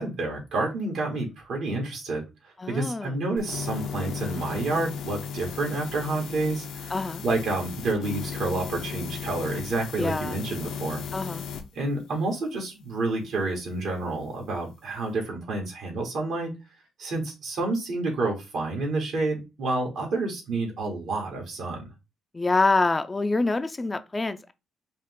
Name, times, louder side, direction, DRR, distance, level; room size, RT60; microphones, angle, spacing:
voice 1, 0.0-11.0 11.7-16.5 17.0-21.9, right 2 dB, 70° right, 2.2 m, -29 dB
voice 2, 2.6-3.2 6.9-7.2 10.0-10.4 11.1-11.5 22.3-24.5, left 3 dB, 20° left, 0.5 m, -26 dB
sound 1, 3.4-11.6, left 6 dB, 80° left, 0.7 m, -36 dB
5.5 x 2.4 x 3.7 m
cardioid pair, 90°, 0 cm